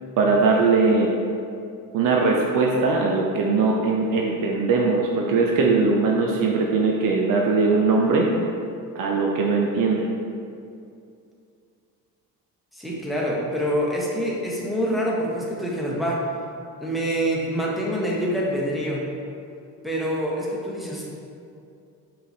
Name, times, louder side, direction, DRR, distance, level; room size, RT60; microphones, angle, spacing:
voice 1, 0.2-1.1 1.9-8.3 8.9-10.1, right 4 dB, 50° right, -1 dB, 0.5 m, -20 dB
voice 2, 12.7-16.2 16.8-19.1 19.8-21.1, equal, ahead, -5 dB, 0.9 m, -26 dB
5.5 x 2.5 x 2.6 m, 2.5 s
hypercardioid pair, 50°, 44 cm